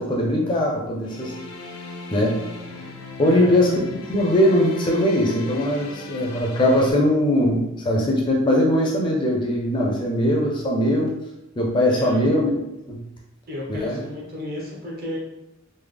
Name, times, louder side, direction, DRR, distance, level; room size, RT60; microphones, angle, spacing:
voice 1, 0.0-1.3 2.1-2.4 2.8-2.9 3.2-3.8 4.1-11.1 11.6-12.5 12.9-13.0 13.7-14.0, left 1 dB, 25° left, -2 dB, 0.4 m, -20 dB
sound 1, 1.0-6.9, left 2 dB, 85° left, 0.5 m, -38 dB
voice 2, 3.2-3.6 11.9-12.2 13.5-15.2, left 1 dB, 45° right, -4 dB, 1.0 m, -32 dB
3.3 x 2.1 x 3.3 m, 0.92 s
head